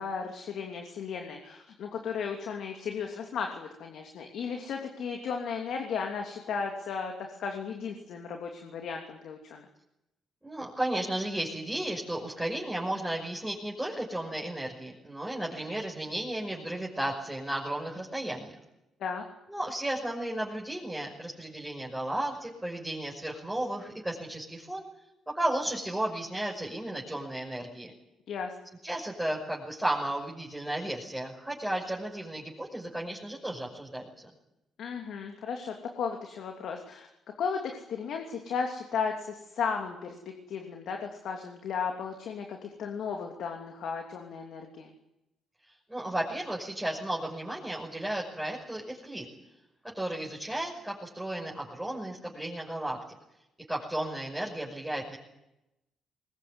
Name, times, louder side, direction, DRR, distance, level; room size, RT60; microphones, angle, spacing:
voice 1, 0.0-9.6 19.0-19.2 28.3-28.5 34.8-37.1 37.4-44.9, left 6 dB, 70° left, 3 dB, 3.0 m, -35 dB
voice 2, 10.4-18.5 19.5-24.8 25.3-27.9 28.8-34.1 45.9-49.3 49.9-53.2 53.7-55.2, right 1 dB, 10° right, -3 dB, 6.0 m, -34 dB
22.5 x 19.5 x 9.7 m, 0.89 s
cardioid pair, 90°, 0 cm